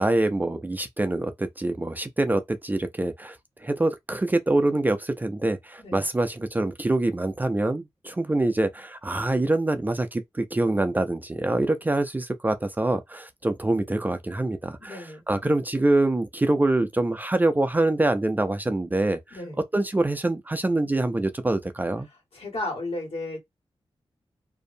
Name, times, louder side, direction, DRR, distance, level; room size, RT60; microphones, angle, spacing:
voice 1, 0.0-3.4 3.6-19.4 19.7-22.1, right 2 dB, 20° right, 0.3 m, -25 dB
voice 2, 14.8-15.2 19.3-19.6 22.3-23.4, left 2 dB, 75° left, 1.4 m, -33 dB
2.6 x 2.0 x 2.5 m
wide cardioid pair, 135°, 10 cm